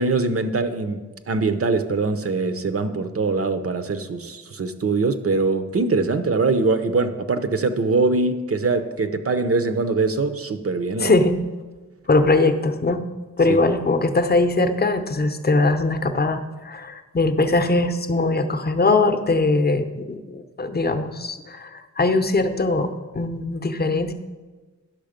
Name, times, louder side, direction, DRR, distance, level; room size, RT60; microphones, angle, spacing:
voice 1, 0.0-11.2 13.5-13.6, right 3 dB, 45° right, 9 dB, 0.7 m, -23 dB
voice 2, 11.0-11.4 12.1-13.0 13.4-24.1, left 2 dB, 30° left, 8 dB, 0.7 m, -21 dB
10.5 x 6.3 x 5.1 m, 1.3 s
wide cardioid pair, 80°, 31 cm